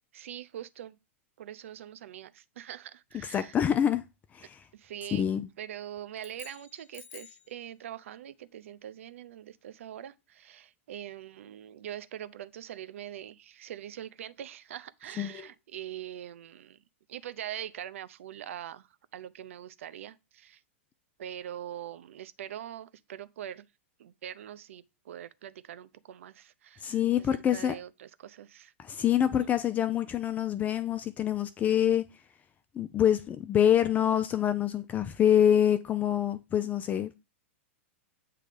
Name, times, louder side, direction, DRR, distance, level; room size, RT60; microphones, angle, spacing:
voice 1, 0.1-1.0 1.4-3.6 4.7-5.3 5.6-16.8 17.1-20.6 21.2-23.7 24.0-28.7 29.2-29.5, right 11 dB, 70° right, 0.6 m, -43 dB
voice 2, 3.3-4.0 4.3-4.6 5.1-5.5 15.2-15.5 26.8-27.7 28.8-32.0 32.7-37.2, left 10 dB, 20° left, 0.5 m, -26 dB
sound 1, 6.1-7.5, left 8 dB, 55° left, 1.2 m, -50 dB
7.6 x 3.1 x 5.0 m
hypercardioid pair, 125°, 7 cm